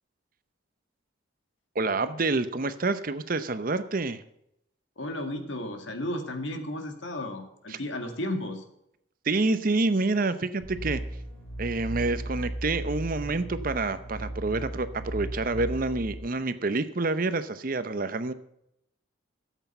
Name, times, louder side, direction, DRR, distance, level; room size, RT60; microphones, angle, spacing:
voice 1, 1.7-4.2 7.7-7.8 9.2-11.0 11.6-18.3, right 3 dB, 45° right, 12 dB, 0.7 m, -28 dB
voice 2, 5.0-8.6, left 1 dB, 65° left, 5 dB, 2.0 m, -33 dB
sound 1, 10.6-16.2, right 1 dB, 15° left, 5.7 m, -36 dB
13.5 x 8.1 x 5.6 m, 0.78 s
head